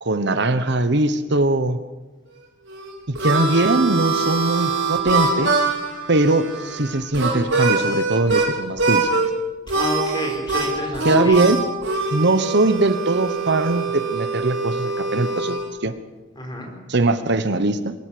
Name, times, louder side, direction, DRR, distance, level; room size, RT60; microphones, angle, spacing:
voice 1, 0.0-1.8 3.2-5.7 6.1-9.1 11.0-11.6 12.1-15.9 16.9-17.9, right 2 dB, 60° right, 11 dB, 1.1 m, -21 dB
Harmonica, 2.7-8.5 8.8-9.3 9.7-15.7, right 3 dB, 85° right, 4.6 m, -23 dB
voice 2, 9.7-11.4 16.3-16.7, equal, 25° left, 2 dB, 4.9 m, -29 dB
23.0 x 14.0 x 8.5 m, 1.1 s
head